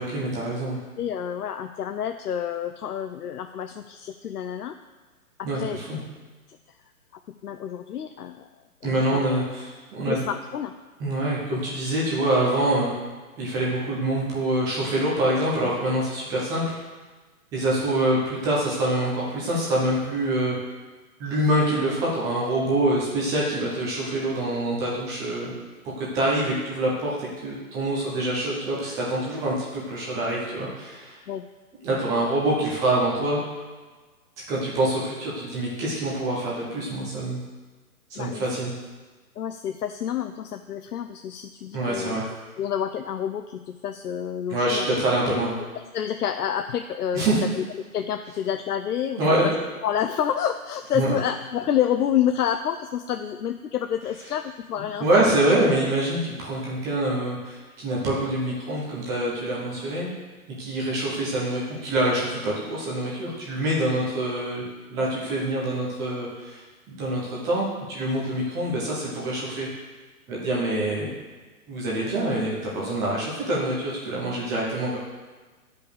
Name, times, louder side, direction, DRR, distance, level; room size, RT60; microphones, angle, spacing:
voice 1, 0.0-0.8 5.4-6.0 8.8-10.2 11.0-12.9 13.4-16.6 17.5-20.6 21.2-25.5 26.0-31.2 31.8-33.4 34.5-37.4 38.1-38.7 41.7-42.3 44.5-45.5 47.1-47.5 49.2-49.5 50.9-51.1 55.0-60.1 60.6-64.6 64.9-66.6 66.9-69.7 70.3-71.1 71.7-75.0, right 1 dB, 5° right, -6 dB, 0.8 m, -25 dB
voice 2, 1.0-4.8 5.4-5.8 7.4-8.5 8.8-9.2 10.1-10.7 31.3-31.5 32.1-32.3 38.2-38.5 39.4-42.2 42.6-44.9 45.9-49.5 49.8-55.3, left 9 dB, 85° left, 8 dB, 0.7 m, -28 dB
11.5 x 5.2 x 6.7 m, 1.3 s
hypercardioid pair, 165°, 45 cm